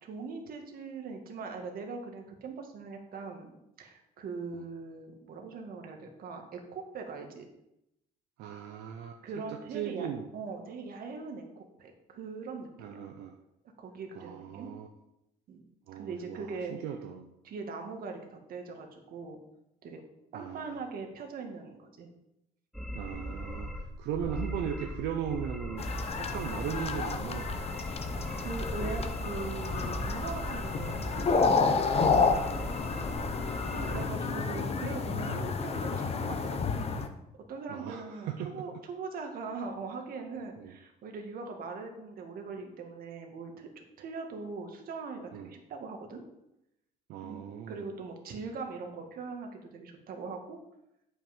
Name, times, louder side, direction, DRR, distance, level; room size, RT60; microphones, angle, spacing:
voice 1, 0.0-3.5 3.8-7.5 9.2-10.1 10.3-13.1 13.8-14.7 15.5-15.6 16.0-16.7 17.4-19.4 19.8-20.0 20.3-22.1 23.2-23.5 28.4-32.8 33.8-36.9 37.5-46.2 47.2-47.4 47.7-50.6, right 4 dB, 60° right, 3 dB, 1.8 m, -41 dB
voice 2, 8.4-9.2 9.5-10.3 12.8-13.3 14.1-14.9 15.9-17.3 20.3-20.8 22.9-25.8 26.2-27.8 31.9-32.1 33.7-34.6 37.7-38.5 40.6-40.7 45.3-45.5 47.1-47.8, right 9 dB, 90° right, 4 dB, 0.8 m, -38 dB
sound 1, 22.7-34.0, equal, ahead, 1.0 m, -38 dB
sound 2, 25.8-37.1, left 4 dB, 35° left, 0.9 m, -30 dB
8.5 x 5.7 x 5.3 m, 0.85 s
cardioid pair, 110°, 17 cm